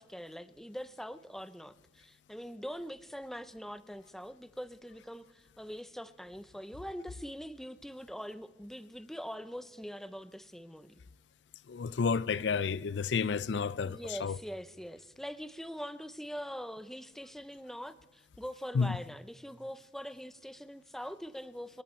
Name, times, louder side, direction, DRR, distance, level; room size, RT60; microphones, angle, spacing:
voice 1, 0.0-10.9 13.8-21.8, equal, ahead, 0.5 m, -43 dB
voice 2, 11.7-14.4 18.7-19.0, left 5 dB, 75° left, 0.4 m, -31 dB
27.5 x 10.5 x 4.4 m
head